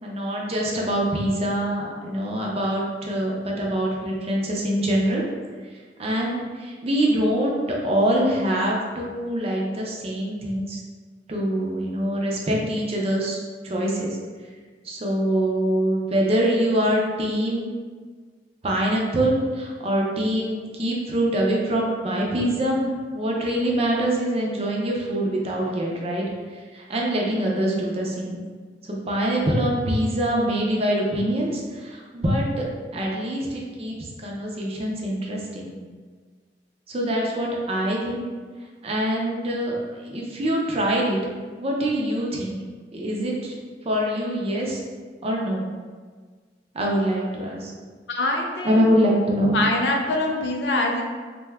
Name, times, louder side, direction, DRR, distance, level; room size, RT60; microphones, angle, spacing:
voice 1, 0.0-5.2 6.0-10.8 11.3-13.4 13.6-14.2 14.8-17.7 18.6-26.3 26.7-28.4 28.9-32.6 32.9-34.0 34.2-35.7 36.9-38.2 38.8-39.8 40.0-41.2 41.6-42.6 42.9-43.5 43.8-44.8 45.2-45.7 46.7-47.7 48.6-49.6, right 1 dB, 35° right, -2 dB, 0.5 m, -24 dB
voice 2, 48.1-48.9 49.5-51.0, left 2 dB, 75° left, 2 dB, 0.4 m, -24 dB
2.7 x 2.2 x 3.3 m, 1.5 s
head